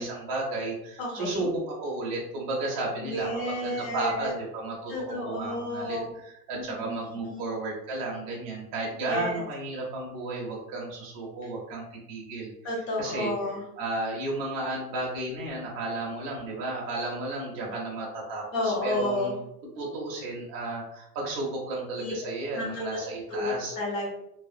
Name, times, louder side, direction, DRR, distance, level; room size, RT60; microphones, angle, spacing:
voice 1, 0.0-12.5 13.0-13.3 13.8-19.4 19.8-23.8, right 2 dB, 25° right, -3 dB, 0.3 m, -33 dB
voice 2, 1.0-1.5 3.0-4.4 4.9-6.1 6.5-7.4 9.1-9.4 12.6-13.6 18.5-19.3 22.0-22.1 22.5-23.0 23.3-23.5 23.8-24.1, left 1 dB, 45° left, -3 dB, 0.9 m, -31 dB
2.6 x 2.0 x 2.5 m, 0.80 s
supercardioid pair, 160°, 47 cm